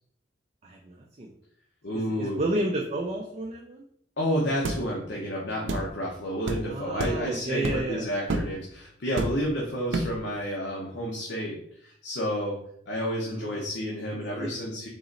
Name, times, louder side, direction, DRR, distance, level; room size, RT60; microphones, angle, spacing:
voice 1, 0.6-1.3 1.9-3.8 6.7-8.1 13.4-13.6 14.4-14.6, right 1 dB, 35° right, 0 dB, 0.5 m, -31 dB
voice 2, 1.8-2.4 4.2-12.6 12.9-14.9, equal, 70° left, -3 dB, 0.9 m, -30 dB
sound 1, 4.6-4.8 5.7-5.9 6.5-6.6 7.0-7.2 7.6-7.9 8.3-8.5 9.2-9.5 9.9-10.2, right 2 dB, 85° right, 0.5 m, -29 dB
3.9 x 3.0 x 3.8 m, 0.66 s
head